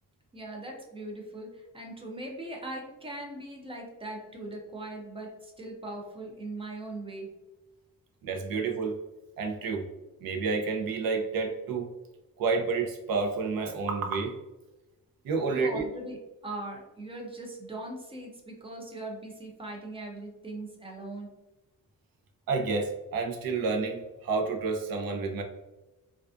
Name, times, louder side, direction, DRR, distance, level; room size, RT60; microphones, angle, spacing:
voice 1, 0.3-7.3 15.5-21.4, right 2 dB, 15° right, 0 dB, 0.3 m, -40 dB
voice 2, 8.2-9.0 9.4-9.9 10.2-11.9 12.4-14.4 15.2-15.9 22.5-25.4, right 4 dB, 75° right, 3 dB, 0.6 m, -29 dB
2.4 x 2.3 x 2.3 m, 1.0 s
wide cardioid pair, 175°, 35 cm